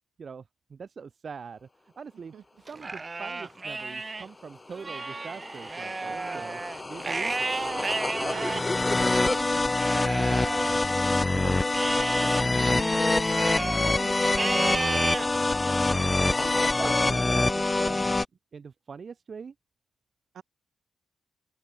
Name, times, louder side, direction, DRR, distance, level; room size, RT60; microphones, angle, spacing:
voice 1, 0.2-2.3 2.6-6.6 6.9-7.3 9.4-9.5 10.3-11.6 12.7-13.3 13.8-15.1 15.9-18.2 18.5-19.5, right 6 dB, 55° right, 2.5 m, -43 dB
Livestock farm animals working animals, 2.7-4.3 4.7-11.3 11.7-13.8 14.3-15.3 15.8-16.2 16.8-17.9, right 3 dB, 35° right, 2.0 m, -34 dB
sound 1, 5.2-18.2, left 2 dB, 25° left, 0.3 m, -25 dB
voice 2, 8.2-8.7 20.3-20.4, right 8 dB, 75° right, 5.7 m, -43 dB
open air
cardioid pair, 65°, 0 cm